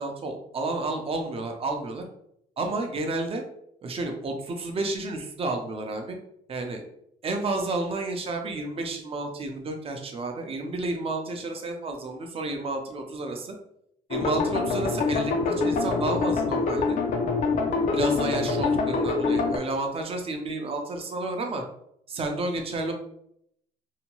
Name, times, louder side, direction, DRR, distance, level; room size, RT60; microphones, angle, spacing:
voice 1, 0.0-2.0 2.6-3.4 3.8-6.2 6.5-6.8 7.2-13.5 14.1-17.0 17.9-21.6 22.1-22.9, right 2 dB, 35° right, 3 dB, 0.6 m, -31 dB
sound 1, 14.1-19.6, left 4 dB, 50° left, 0.5 m, -25 dB
2.8 x 2.2 x 2.9 m, 0.74 s
cardioid pair, 110°, 17 cm